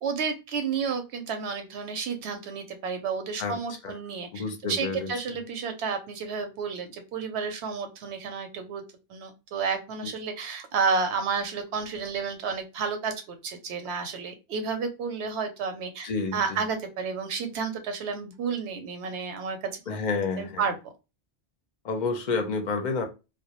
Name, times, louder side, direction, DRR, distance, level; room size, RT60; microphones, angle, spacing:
voice 1, 0.0-8.8 9.1-20.0 20.4-20.7, right 5 dB, 90° right, 0.8 m, -31 dB
voice 2, 4.3-5.1 16.0-16.6 19.9-20.6 21.8-23.0, left 4 dB, 55° left, 0.6 m, -29 dB
2.2 x 2.0 x 2.8 m
omnidirectional pair, 1.1 m